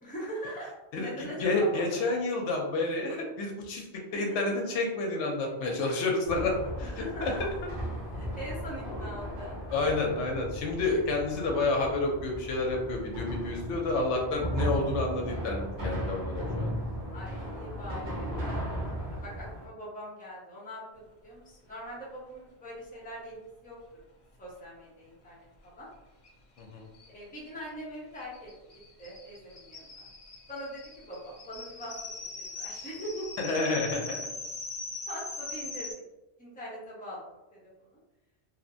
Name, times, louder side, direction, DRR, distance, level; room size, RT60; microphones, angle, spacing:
voice 1, 0.0-2.0 4.1-4.5 6.8-7.4 8.1-9.6 17.1-18.5 19.1-24.0 24.4-25.9 27.1-28.5 29.0-30.1 30.5-33.3 35.1-35.9 36.4-37.3 37.5-37.9, equal, 10° left, -6 dB, 0.7 m, -42 dB
voice 2, 0.9-3.9 4.1-6.9 7.2-7.4 9.7-16.8 26.6-26.8 33.4-34.2, left 2 dB, 85° left, 1 dB, 0.9 m, -29 dB
sound 1, 6.2-19.7, equal, 55° right, 1.0 m, -36 dB
sound 2, 26.2-26.3 26.6-26.7 26.9-35.9, left 3 dB, 45° left, 0.4 m, -41 dB
2.7 x 2.1 x 2.6 m, 1.0 s
omnidirectional pair, 1.2 m